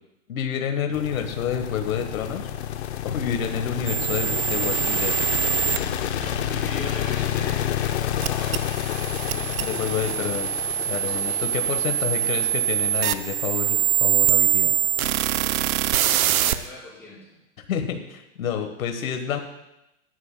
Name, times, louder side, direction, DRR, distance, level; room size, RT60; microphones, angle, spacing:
voice 1, 0.3-2.5 3.0-5.1 9.6-10.5 10.9-14.7 17.7-19.4, left 8 dB, 80° left, 5 dB, 1.4 m, -28 dB
sound 1, 0.9-16.1, left 10 dB, 50° left, 1.0 m, -30 dB
sound 2, 3.9-5.8 8.2-16.6, right 12 dB, 85° right, 0.7 m, -24 dB
voice 2, 6.1-8.6 8.9-9.2 11.2-12.3 15.9-17.4, left 2 dB, 5° left, -9 dB, 4.7 m, -40 dB
sound 3, 6.2-6.4 7.2-7.4 8.4-8.6 9.4-9.5 10.2-10.3 11.1-11.3, right 1 dB, 15° right, 2.9 m, -43 dB
17.0 x 11.0 x 2.2 m, 0.89 s
hypercardioid pair, 165°, 41 cm